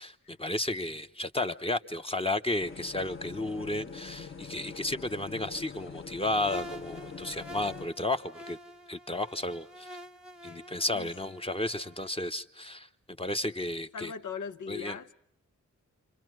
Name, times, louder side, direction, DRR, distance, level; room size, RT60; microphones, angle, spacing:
voice 1, 0.0-8.6 8.9-9.9 10.4-12.9 13.2-14.1 14.7-15.0, left 2 dB, 20° left, 0.9 m, -33 dB
sound 1, 2.6-7.9, left 5 dB, 45° left, 1.2 m, -44 dB
sound 2, 6.3-12.1, equal, 5° right, 1.0 m, -47 dB
voice 2, 10.9-11.3 13.9-15.1, left 6 dB, 90° left, 0.9 m, -39 dB
29.5 x 26.0 x 6.1 m
wide cardioid pair, 100°, 30 cm